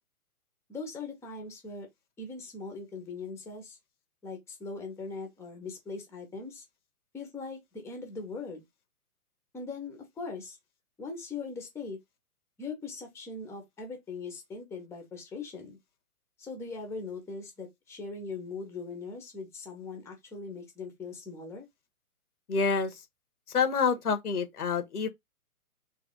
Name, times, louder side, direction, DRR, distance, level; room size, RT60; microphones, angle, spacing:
voice 1, 0.7-1.9 2.2-3.8 4.2-6.6 7.1-8.6 9.5-10.6 11.0-12.0 12.6-15.8 16.4-21.7, left 4 dB, 5° left, 0.9 m, -40 dB
voice 2, 22.5-23.0 23.5-25.1, left 5 dB, 85° left, 1.4 m, -27 dB
3.4 x 3.1 x 3.7 m
hypercardioid pair, 135°, 44 cm